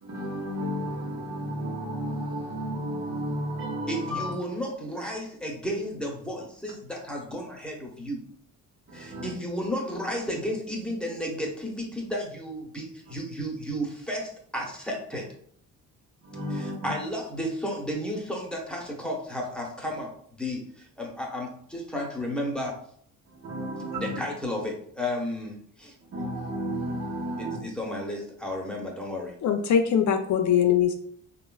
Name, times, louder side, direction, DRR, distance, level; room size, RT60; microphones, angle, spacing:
voice 1, 0.0-4.3 8.9-9.3 16.2-16.9 23.4-24.1 26.1-27.6, equal, 45° right, 1.3 m, -32 dB
voice 2, 3.9-8.2 8.9-15.2 16.5-22.8 23.9-25.9 27.4-29.3, equal, 5° left, 0.9 m, -33 dB
voice 3, 29.4-30.9, left 8 dB, 55° left, 0.5 m, -22 dB
3.0 x 2.5 x 2.2 m
supercardioid pair, 60°, 36 cm